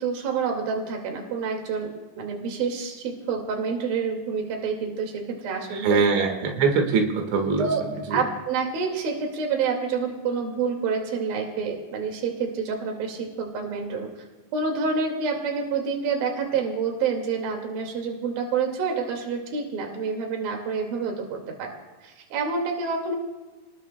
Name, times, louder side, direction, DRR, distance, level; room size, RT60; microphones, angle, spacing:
voice 1, 0.0-6.3 7.6-7.8 8.1-14.1 14.5-21.7 22.0-23.2, right 5 dB, 60° right, 2 dB, 3.6 m, -28 dB
voice 2, 5.8-7.7 8.1-8.2, right 4 dB, 85° right, 3 dB, 4.0 m, -22 dB
29.5 x 19.5 x 2.2 m, 1.2 s
omnidirectional pair, 5.1 m